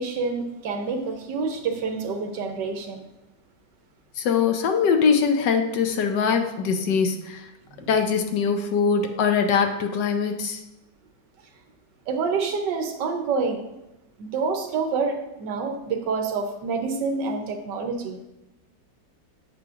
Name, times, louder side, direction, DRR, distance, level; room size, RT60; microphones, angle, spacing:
voice 1, 0.0-3.0 7.8-7.9 12.1-13.6 14.2-18.2, right 4 dB, 75° right, 5 dB, 1.4 m, -27 dB
voice 2, 4.2-7.4 7.9-10.6, left 6 dB, 75° left, 6 dB, 1.4 m, -22 dB
8.5 x 6.7 x 2.5 m, 0.91 s
omnidirectional pair, 1.9 m